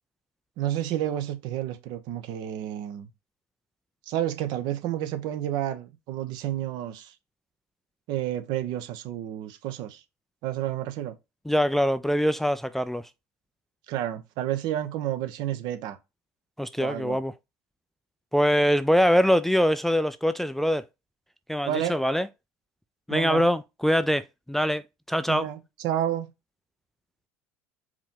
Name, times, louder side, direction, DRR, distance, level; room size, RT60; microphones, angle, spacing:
voice 1, 0.6-3.1 4.1-7.1 8.1-10.0 10.4-11.1 13.9-16.0 16.8-17.2 21.7-21.9 23.1-23.5 25.3-26.3, right 12 dB, 65° right, 0.8 m, -30 dB
voice 2, 11.5-13.0 16.6-17.3 18.3-20.8 21.5-22.3 23.1-24.8 25.1-25.5, equal, 5° left, 0.3 m, -23 dB
4.8 x 2.9 x 3.7 m
hypercardioid pair, 85°, 8 cm